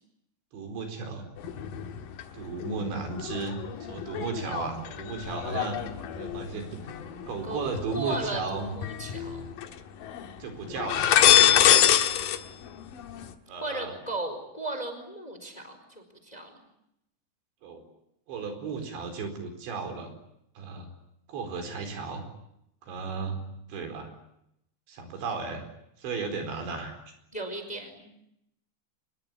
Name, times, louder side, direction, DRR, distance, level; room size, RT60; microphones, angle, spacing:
voice 1, 0.5-1.3 2.3-3.6 3.9-5.8 6.1-6.9 7.2-8.7 10.4-11.2 13.5-13.9 17.6-17.8 18.3-20.1 20.6-20.9 21.3-22.3 22.8-23.4 23.7-24.1 24.9-25.6 26.0-26.9, right 4 dB, 80° right, 6 dB, 6.7 m, -34 dB
sound 1, 1.4-2.2 2.6-8.2 8.8-9.7 10.0-10.3 10.7-12.4 12.6-13.3, left 10 dB, 60° left, 2.8 m, -25 dB
voice 2, 7.4-9.4 10.6-10.7 11.5-11.8 13.6-16.7 27.3-28.3, right 2 dB, 10° left, 7 dB, 4.1 m, -36 dB
25.5 x 21.5 x 10.0 m, 0.81 s
omnidirectional pair, 5.2 m